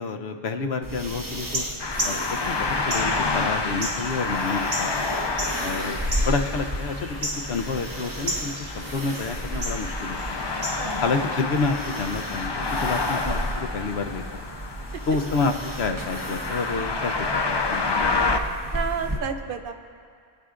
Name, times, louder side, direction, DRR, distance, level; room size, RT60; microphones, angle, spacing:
voice 1, 0.0-1.6 2.0-5.0 5.6-7.2 7.5-10.5 11.0-14.2 15.1-18.2, left 4 dB, 90° left, 6 dB, 1.0 m, -29 dB
sound 1, 0.8-19.2, right 1 dB, 20° right, 0.8 m, -34 dB
sound 2, 1.3-11.4, equal, 85° right, 2.2 m, -35 dB
sound 3, 1.8-18.4, left 3 dB, 35° left, 0.4 m, -29 dB
voice 2, 18.7-19.7, right 6 dB, 65° right, 8 dB, 0.7 m, -30 dB
23.5 x 9.3 x 2.5 m, 2.3 s
omnidirectional pair, 1.0 m